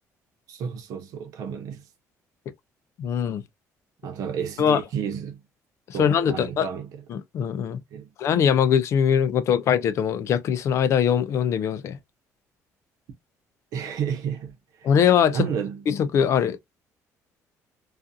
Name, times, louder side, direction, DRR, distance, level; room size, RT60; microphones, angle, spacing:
voice 1, 0.5-1.8 4.0-5.4 5.9-7.0 7.9-8.1 13.7-14.9 15.3-15.8, right 7 dB, 70° right, 0.8 m, -31 dB
voice 2, 3.0-3.4 4.6-4.8 5.9-6.7 7.1-7.8 8.2-12.0 14.8-15.5 15.9-16.6, left 8 dB, 50° left, 0.4 m, -22 dB
2.6 x 2.4 x 2.2 m
cardioid pair, 145°, 6 cm